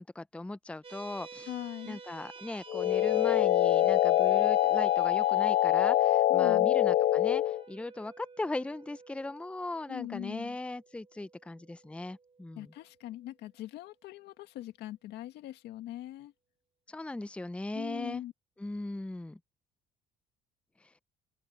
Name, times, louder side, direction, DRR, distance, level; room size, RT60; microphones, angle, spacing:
voice 1, 0.0-1.5 1.9-12.7 16.9-18.2 18.6-19.4, left 2 dB, 5° left, 0.7 m, -38 dB
sound 1, 0.8-13.5, right 5 dB, 35° right, 5.2 m, -51 dB
voice 2, 1.5-2.0 6.3-6.8 9.9-10.6 12.6-16.3 17.7-18.3, left 14 dB, 80° left, 2.0 m, -41 dB
sound 2, 2.7-7.6, left 13 dB, 50° left, 0.4 m, -24 dB
cardioid pair, 110°, 17 cm